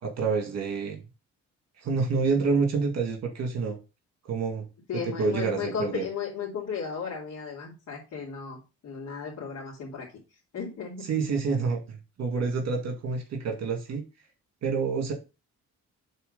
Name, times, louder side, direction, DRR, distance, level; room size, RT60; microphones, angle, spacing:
voice 1, 0.0-1.0 1.8-3.8 4.3-4.7 5.2-6.0 11.1-14.0 14.6-15.1, right 4 dB, 60° right, 3 dB, 2.1 m, -28 dB
voice 2, 4.9-10.1 10.5-11.1, left 6 dB, 65° left, -4 dB, 2.5 m, -35 dB
6.8 x 4.1 x 5.3 m, 0.29 s
cardioid pair, 90°, 30 cm